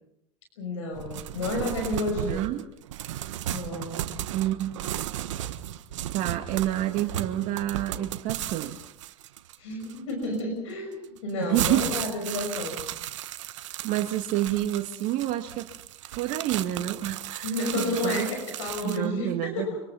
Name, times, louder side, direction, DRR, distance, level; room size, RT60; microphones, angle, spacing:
voice 1, 0.6-2.4 3.5-4.0 9.6-12.9 17.4-19.8, left 2 dB, 75° left, 3 dB, 5.9 m, -31 dB
sound 1, 0.9-10.4 11.0-19.1, right 12 dB, 75° right, 1.3 m, -35 dB
voice 2, 2.2-2.6 4.3-5.0 6.1-8.8 11.4-11.9 13.8-15.7 16.2-18.3 18.8-19.7, right 13 dB, 55° right, 5 dB, 1.9 m, -28 dB
26.0 x 25.0 x 5.7 m, 0.75 s
hypercardioid pair, 85°, 16 cm